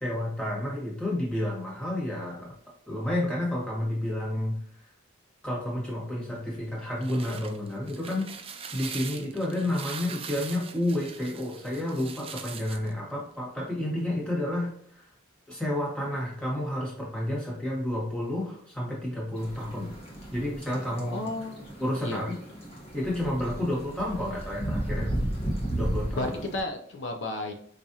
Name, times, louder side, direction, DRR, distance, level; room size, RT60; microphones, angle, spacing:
voice 1, 0.0-2.5 2.9-4.6 5.4-8.3 8.7-15.0 15.5-19.9 20.3-21.3 21.8-22.3 22.9-25.1 25.7-26.3, left 1 dB, 5° left, -5 dB, 1.3 m, -30 dB
sound 1, 6.8-12.9, right 6 dB, 30° right, 0.3 m, -42 dB
sound 2, 19.4-26.6, right 1 dB, 30° left, 0.9 m, -34 dB
voice 2, 21.1-21.7 22.0-22.2 26.2-27.5, left 2 dB, 60° left, 3 dB, 0.4 m, -33 dB
4.7 x 2.5 x 2.7 m, 0.66 s
head